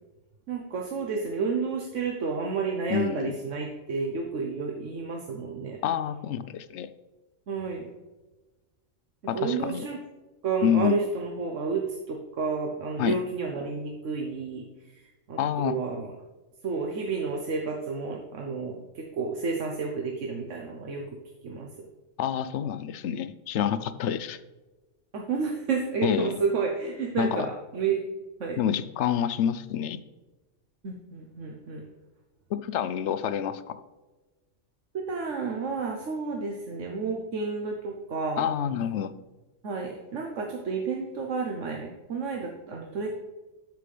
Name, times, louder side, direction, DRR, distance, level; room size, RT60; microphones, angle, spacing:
voice 1, 0.5-5.8 7.5-7.9 9.3-10.0 10.4-14.6 15.3-16.1 16.6-21.0 21.4-21.9 25.1-28.0 28.4-28.6 30.8-31.8 34.9-38.5 39.6-43.2, right 4 dB, 80° right, 1 dB, 1.3 m, -31 dB
voice 2, 2.9-3.3 5.8-6.9 9.3-9.8 10.6-11.0 13.0-13.2 15.4-15.8 22.2-24.4 26.0-26.4 27.2-27.5 28.6-30.0 32.5-33.8 38.4-39.1, left 9 dB, 70° left, 13 dB, 0.8 m, -28 dB
12.5 x 5.9 x 3.3 m, 1.2 s
omnidirectional pair, 1.3 m